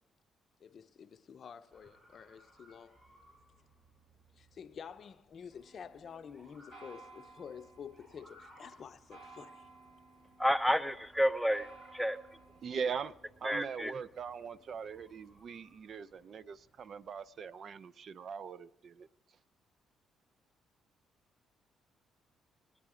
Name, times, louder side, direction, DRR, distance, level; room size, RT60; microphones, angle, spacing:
voice 1, 0.6-3.0 4.4-9.6, left 7 dB, 55° left, 0.6 m, -49 dB
Motor vehicle (road) / Siren, 1.7-17.3, equal, 20° right, 5.3 m, -64 dB
sound 1, 5.5-15.7, right 3 dB, 85° right, 3.4 m, -59 dB
voice 2, 10.4-11.7 11.9-12.2 13.4-13.9, equal, ahead, 0.5 m, -30 dB
voice 3, 12.6-13.1 13.4-19.1, right 6 dB, 55° right, 0.4 m, -41 dB
21.0 x 9.1 x 4.9 m
cardioid pair, 80°, 0 cm